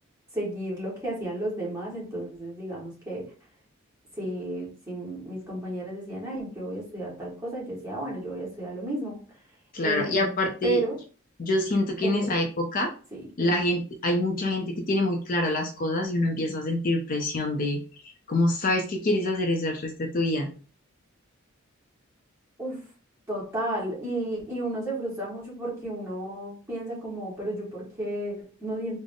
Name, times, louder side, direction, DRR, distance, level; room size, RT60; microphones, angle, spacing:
voice 1, 0.3-3.3 4.2-9.2 9.8-11.0 12.0-12.3 13.1-13.5 22.6-22.8 23.3-29.0, right 1 dB, 15° right, -6 dB, 1.6 m, -33 dB
voice 2, 9.7-10.8 11.4-12.9 13.4-20.5, left 1 dB, 40° left, 2 dB, 0.5 m, -26 dB
3.6 x 2.1 x 3.6 m, 0.37 s
head